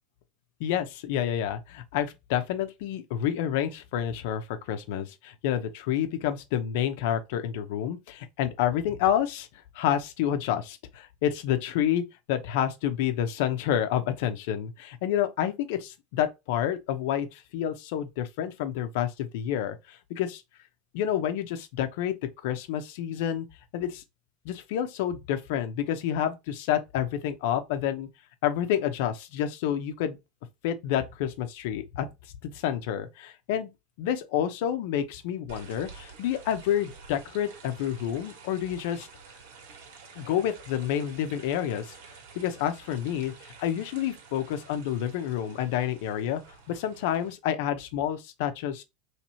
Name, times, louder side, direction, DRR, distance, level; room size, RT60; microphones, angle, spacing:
voice 1, 0.6-9.5 9.7-12.0 12.3-20.4 20.9-22.1 22.4-23.5 23.7-24.0 24.4-28.1 28.4-30.2 30.6-32.1 32.4-33.7 34.0-39.1 40.2-42.0 42.3-43.3 43.6-46.4 46.7-48.8, left 10 dB, 65° left, 0.7 m, -29 dB
sound 1, 35.5-47.3, right 5 dB, 75° right, 1.8 m, -50 dB
3.2 x 3.1 x 4.2 m
supercardioid pair, 145°, 0 cm